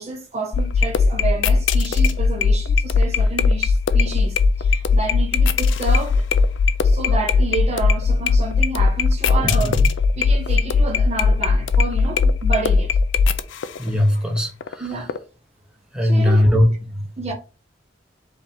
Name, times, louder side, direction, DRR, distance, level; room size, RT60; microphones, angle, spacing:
voice 1, 0.0-6.3 6.8-9.7 10.2-13.0 14.8-15.1 16.0-16.4 17.2-17.3, right 3 dB, 35° right, 0.7 m, -29 dB
sound 1, 0.5-13.9 14.4-14.7 15.1-15.2, left 4 dB, 85° left, 0.4 m, -18 dB
voice 2, 9.4-9.8 13.8-14.8 15.9-17.0, left 1 dB, 5° right, 0.9 m, -19 dB
4.8 x 2.7 x 3.5 m
head